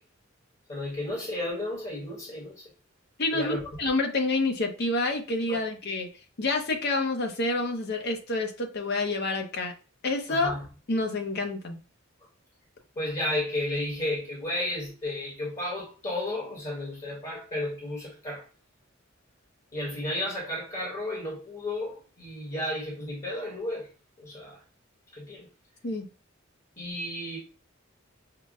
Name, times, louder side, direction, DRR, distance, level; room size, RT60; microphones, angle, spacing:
voice 1, 0.7-2.6 3.3-3.6 5.5-5.6 10.3-10.6 13.0-18.4 19.7-23.9 24.2-24.6 25.1-25.5 26.8-27.4, left 1 dB, 35° left, 1.3 m, -33 dB
voice 2, 3.2-6.1 6.4-9.7 10.0-10.5 10.9-11.8 25.8-26.1, left 2 dB, 55° left, 0.8 m, -28 dB
5.7 x 2.1 x 2.4 m
head